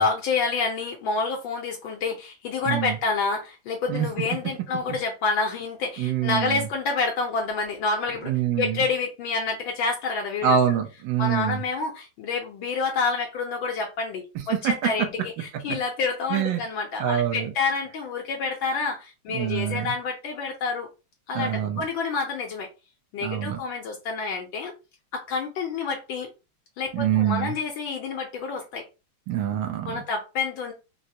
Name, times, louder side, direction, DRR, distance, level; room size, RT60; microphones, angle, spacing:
voice 1, 0.0-10.6 11.2-20.9 21.3-22.7 23.1-24.7 25.1-26.3 26.8-28.9 29.9-30.7, left 4 dB, 75° left, 1.4 m, -28 dB
voice 2, 2.7-3.0 3.9-4.1 6.0-6.6 8.3-8.8 10.4-11.6 14.5-14.9 16.3-16.6 17.0-17.5 19.3-19.9 21.3-21.8 23.2-23.6 26.9-27.5 29.3-30.0, right 9 dB, 75° right, 1.3 m, -25 dB
3.9 x 2.1 x 2.6 m
omnidirectional pair, 2.2 m